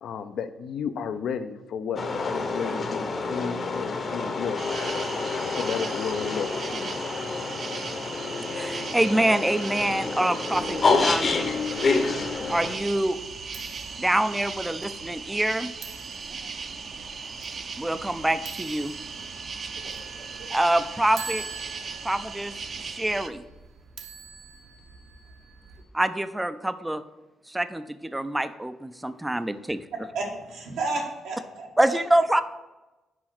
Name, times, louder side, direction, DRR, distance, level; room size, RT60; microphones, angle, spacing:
voice 1, 0.0-4.8 5.5-7.3, left 7 dB, 70° left, 10 dB, 0.5 m, -33 dB
sound 1, 2.0-12.8, left 3 dB, 45° left, 0.9 m, -28 dB
sound 2, 4.6-23.3, right 5 dB, 45° right, 0.6 m, -38 dB
voice 2, 8.5-11.5 12.5-13.2 14.0-15.7 17.8-18.9 20.5-21.4 22.0-22.5 22.8-23.4 25.9-27.0 27.5-29.8 31.8-32.4, right 1 dB, 10° right, 11 dB, 0.4 m, -25 dB
sound 3, 10.5-25.8, right 5 dB, 70° right, 1.0 m, -46 dB
voice 3, 30.1-32.0, right 3 dB, 90° right, -1 dB, 1.8 m, -32 dB
6.3 x 4.8 x 6.0 m, 1.1 s
cardioid pair, 90°, 0 cm